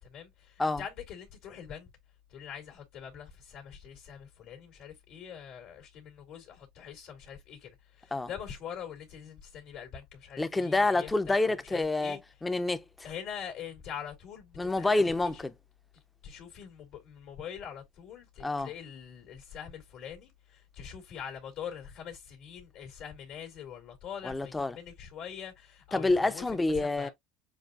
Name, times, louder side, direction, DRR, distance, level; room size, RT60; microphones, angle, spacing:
voice 1, 0.0-1.9 2.3-12.2 13.0-15.0 16.2-26.4 26.8-27.1, left 8 dB, 65° left, 2.5 m, -44 dB
voice 2, 10.4-13.1 14.6-15.5 18.4-18.7 24.2-24.8 25.9-27.1, left 2 dB, 15° left, 0.7 m, -28 dB
7.2 x 2.6 x 2.5 m
supercardioid pair, 100°, 0 cm